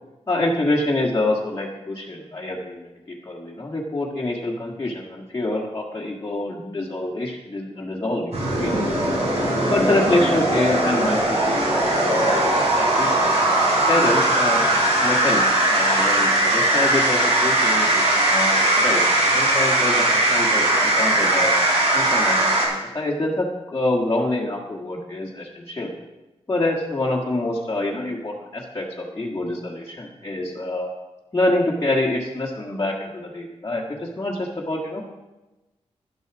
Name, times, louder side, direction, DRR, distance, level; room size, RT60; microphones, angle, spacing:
voice 1, 0.3-2.9 3.2-8.8 9.6-14.6 15.0-19.0 19.3-21.5 21.9-25.9 26.5-30.9 31.3-35.0, left 2 dB, 25° left, -4 dB, 1.5 m, -26 dB
sound 1, 8.3-22.7, right 1 dB, 70° right, 4.3 m, -19 dB
11.0 x 8.1 x 6.0 m, 1.1 s
wide cardioid pair, 150°, 11 cm